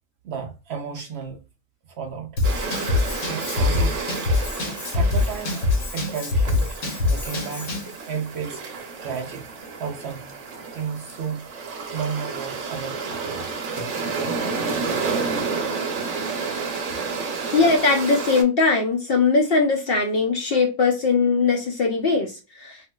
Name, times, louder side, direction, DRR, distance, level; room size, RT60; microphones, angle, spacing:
voice 1, 0.2-1.4 1.9-2.3 3.2-4.0 4.9-6.8 7.1-7.7 8.1-8.6 9.0-10.4 10.7-11.5 11.9-13.6, right 6 dB, 80° right, 0.5 m, -33 dB
Drum kit / Drum, 2.4-7.9, left 3 dB, 55° left, 0.9 m, -24 dB
sound 1, 2.4-18.4, right 4 dB, 60° right, 0.9 m, -30 dB
voice 2, 17.5-22.8, left 4 dB, 85° left, 0.5 m, -20 dB
3.5 x 2.4 x 2.2 m
omnidirectional pair, 1.6 m